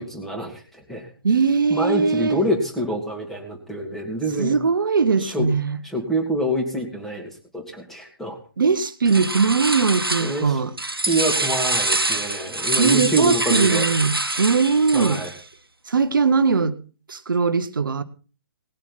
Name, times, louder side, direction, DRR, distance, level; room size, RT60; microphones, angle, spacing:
voice 1, 0.0-1.1 1.7-4.6 5.2-5.5 5.8-8.4 10.2-10.6 11.1-13.9 14.9-15.3, equal, 5° left, 1 dB, 3.0 m, -26 dB
voice 2, 1.2-2.4 4.4-5.8 8.6-10.7 12.8-15.2 15.9-16.8 17.1-18.0, right 5 dB, 65° right, 11 dB, 1.1 m, -20 dB
sound 1, 9.0-10.5 10.8-15.4, right 2 dB, 80° right, 1.3 m, -25 dB
19.5 x 7.2 x 5.8 m, 0.37 s
figure-of-eight pair, 125°, 12 cm